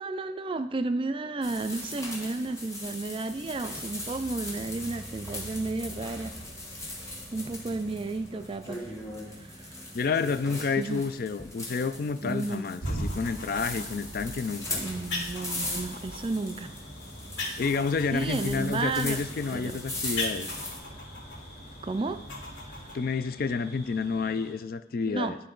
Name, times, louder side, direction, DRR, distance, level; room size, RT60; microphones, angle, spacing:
voice 1, 0.0-6.4 6.8-6.9 7.3-8.8 9.4-9.9 10.8-11.0 12.2-12.7 13.7-13.9 14.8-16.7 18.1-19.2 19.5-19.7 21.8-22.2 22.6-23.0 25.1-25.4, right 3 dB, 30° right, 10 dB, 0.3 m, -32 dB
sound 1, 1.4-20.8, left 1 dB, 15° left, 1.2 m, -39 dB
voice 2, 9.9-14.8 17.5-20.5 22.9-25.4, left 4 dB, 50° left, 12 dB, 0.3 m, -29 dB
sound 2, 12.8-22.9, left 1 dB, 90° left, 2.6 m, -38 dB
sound 3, 15.3-24.5, left 1 dB, 35° left, 1.8 m, -50 dB
11.0 x 3.7 x 3.9 m, 0.84 s
head